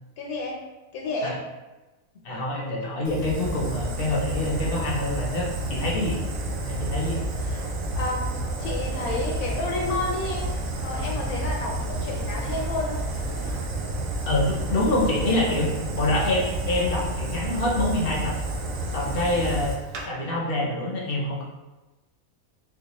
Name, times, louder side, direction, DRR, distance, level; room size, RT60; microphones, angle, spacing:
voice 1, 0.2-0.6 0.9-1.4 7.4-10.5 10.8-13.0 13.4-13.7 19.3-19.4, left 2 dB, 85° left, -1 dB, 1.1 m, -31 dB
voice 2, 2.2-6.2 6.6-7.2 14.3-18.4 18.9-19.8 20.1-21.4, left 1 dB, 55° left, -3 dB, 0.7 m, -26 dB
Fire, 3.0-20.0, right 1 dB, 70° right, 0.9 m, -30 dB
sound 1, 8.6-13.6, equal, 5° right, 0.4 m, -40 dB
4.6 x 2.1 x 2.9 m, 1.1 s
omnidirectional pair, 1.5 m